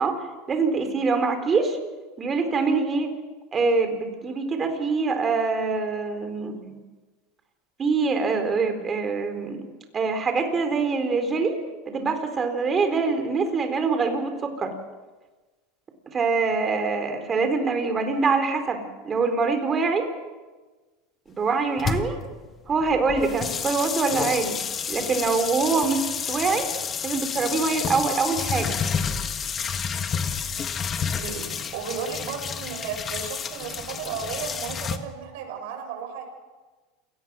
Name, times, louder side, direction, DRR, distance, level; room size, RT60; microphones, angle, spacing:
voice 1, 0.0-1.8 2.2-3.1 3.5-6.8 7.8-9.6 9.9-11.6 11.9-14.7 16.1-20.1 21.3-22.2 22.7-24.6 24.9-26.7 27.0-28.8, right 4 dB, 25° right, 7 dB, 4.1 m, -24 dB
sound 1, 21.8-35.0, left 6 dB, 30° left, 1.6 m, -30 dB
voice 2, 31.2-36.2, right 7 dB, 70° right, 3 dB, 6.9 m, -34 dB
28.0 x 18.5 x 6.3 m, 1.3 s
supercardioid pair, 120°, 0 cm